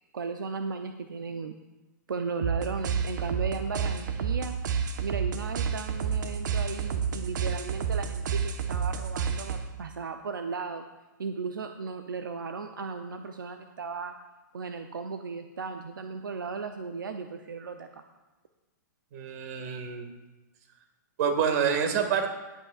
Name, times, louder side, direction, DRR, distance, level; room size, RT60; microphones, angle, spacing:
voice 1, 0.1-1.6 2.1-4.6 5.0-10.9 11.2-14.1 14.5-18.0, right 5 dB, 90° right, 7 dB, 0.7 m, -36 dB
sound 1, 2.4-9.8, right 6 dB, 70° right, 1.2 m, -30 dB
voice 2, 19.1-20.1 21.2-22.3, right 7 dB, 55° right, 5 dB, 2.0 m, -27 dB
18.5 x 8.2 x 2.5 m, 1.1 s
hypercardioid pair, 125°, 11 cm